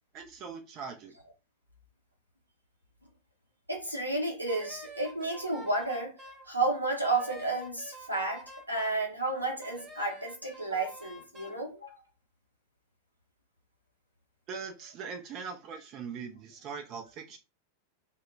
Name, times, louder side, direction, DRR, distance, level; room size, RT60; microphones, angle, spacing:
voice 1, 0.1-1.2 14.5-17.4, right 5 dB, 35° right, 0.4 m, -41 dB
voice 2, 3.7-6.1 6.5-12.0, right 2 dB, 85° right, 0.7 m, -32 dB
Wind instrument woodwind instrument, 4.5-6.5 7.0-9.1 9.6-11.6, right 1 dB, 15° right, 0.8 m, -48 dB
2.2 x 2.1 x 3.0 m
figure-of-eight pair, 90°, 0 cm